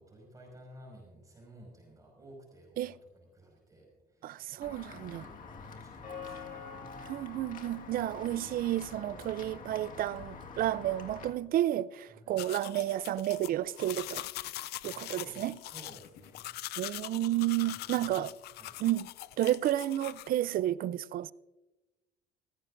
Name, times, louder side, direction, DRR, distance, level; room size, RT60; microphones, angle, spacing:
voice 1, 0.0-6.7 12.1-12.4 14.8-16.5 17.6-18.2 18.5-18.8, right 1 dB, 20° right, 5.6 m, -55 dB
voice 2, 4.2-5.3 7.0-14.2 14.8-15.6 16.8-18.3 18.8-19.1 19.4-21.3, right 13 dB, 60° right, 0.5 m, -31 dB
Walk footsteps / Bell, 4.6-11.3, left 5 dB, 50° left, 1.8 m, -46 dB
sound 1, 12.4-20.3, left 16 dB, 75° left, 0.5 m, -42 dB
18.5 x 15.5 x 2.6 m
cardioid pair, 110°, 17 cm